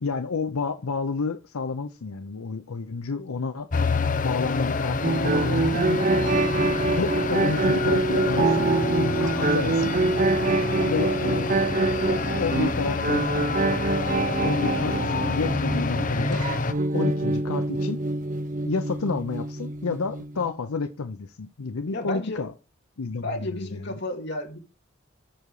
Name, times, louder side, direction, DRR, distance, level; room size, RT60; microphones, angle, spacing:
voice 1, 0.0-3.7 4.2-6.0 6.9-9.9 10.8-13.3 14.4-16.4 16.9-18.0 18.6-22.5 23.0-24.0, left 4 dB, 90° left, 0.7 m, -30 dB
sound 1, 3.7-16.7, left 3 dB, 40° left, 0.7 m, -28 dB
Slow Tremolo Guitar, 5.0-20.5, right 2 dB, 35° right, 0.5 m, -25 dB
voice 2, 21.9-22.4 23.2-24.6, left 1 dB, 55° left, 2.2 m, -32 dB
8.7 x 6.9 x 4.8 m
head